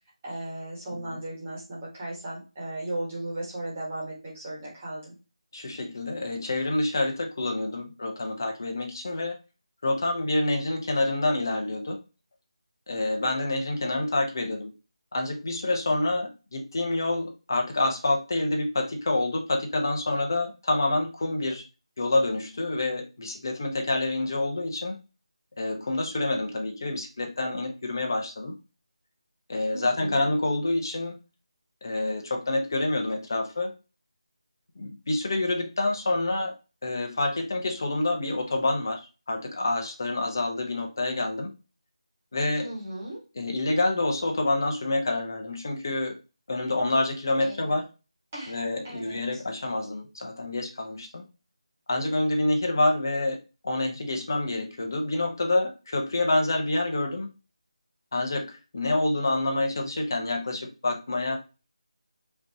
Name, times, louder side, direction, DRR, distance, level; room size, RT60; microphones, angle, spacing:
voice 1, 0.2-5.1 29.7-30.2 42.5-43.2 47.4-47.6 48.3-48.6 48.8-49.4, right 1 dB, 15° right, -5 dB, 1.6 m, -36 dB
voice 2, 5.5-9.4 9.8-12.0 12.9-14.7 15.1-21.6 22.0-25.0 25.6-28.6 29.5-31.2 31.8-33.7 34.8-36.5 36.8-41.5 42.3-42.7 43.3-46.2 46.5-47.8 48.5-51.3 51.9-57.3 58.1-61.4, left 2 dB, 35° left, 2 dB, 1.0 m, -27 dB
5.0 x 3.1 x 2.9 m, 0.30 s
figure-of-eight pair, 175°, 3 cm